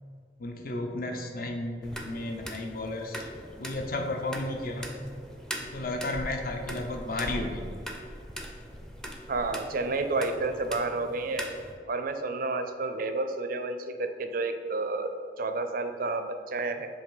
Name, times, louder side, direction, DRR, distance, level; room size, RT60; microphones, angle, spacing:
voice 1, 0.4-3.3 3.6-4.9 5.6-7.7, left 2 dB, 55° left, 3 dB, 0.7 m, -33 dB
sound 1, 1.8-11.7, equal, 5° left, 0.5 m, -41 dB
voice 2, 9.3-11.5 11.9-16.9, right 3 dB, 55° right, 8 dB, 0.5 m, -30 dB
7.1 x 3.2 x 5.5 m, 2.2 s
head